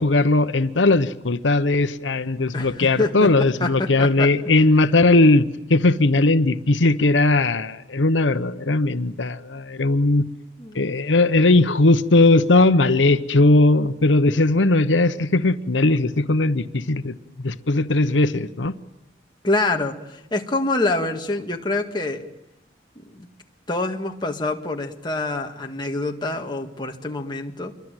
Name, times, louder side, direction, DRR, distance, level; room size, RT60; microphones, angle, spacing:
voice 1, 0.0-10.3 10.7-17.1 17.4-18.7, left 2 dB, 85° left, 11 dB, 1.0 m, -18 dB
voice 2, 2.5-3.3 3.6-4.3 10.6-10.8 19.4-22.3 23.0-23.3 23.7-27.7, left 2 dB, 25° left, 3 dB, 1.8 m, -26 dB
27.5 x 23.5 x 9.1 m, 0.89 s
head